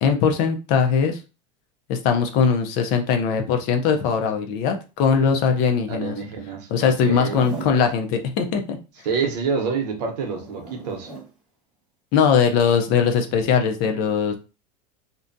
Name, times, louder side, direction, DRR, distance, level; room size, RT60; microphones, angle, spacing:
voice 1, 0.0-1.2 1.9-6.2 6.7-8.8 12.1-14.4, left 6 dB, 40° left, 0.5 m, -20 dB
voice 2, 5.9-7.4 9.0-11.1, right 5 dB, 80° right, 0.8 m, -27 dB
Zipper (clothing), 7.1-7.8 10.0-11.3 13.2-13.5, right 4 dB, ahead, 1.2 m, -37 dB
2.5 x 2.2 x 2.5 m
supercardioid pair, 155°, 21 cm